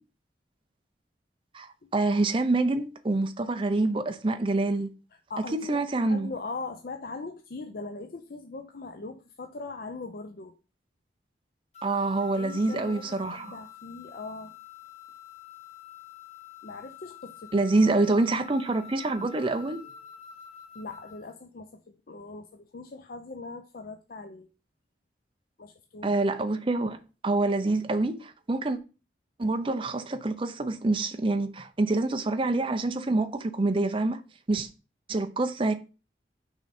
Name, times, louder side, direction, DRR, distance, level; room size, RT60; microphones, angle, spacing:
voice 1, 1.9-4.9 5.5-6.3 11.8-13.6 17.5-19.8 26.0-28.8 29.4-34.2 34.5-34.7 35.1-35.7, right 2 dB, 30° right, 0.6 m, -26 dB
voice 2, 5.3-10.5 12.2-14.5 16.6-17.7 20.7-24.5 25.6-26.2, left 3 dB, 55° left, 0.6 m, -40 dB
sound 1, 11.7-21.3, left 8 dB, 40° left, 1.3 m, -47 dB
6.2 x 4.8 x 4.3 m
head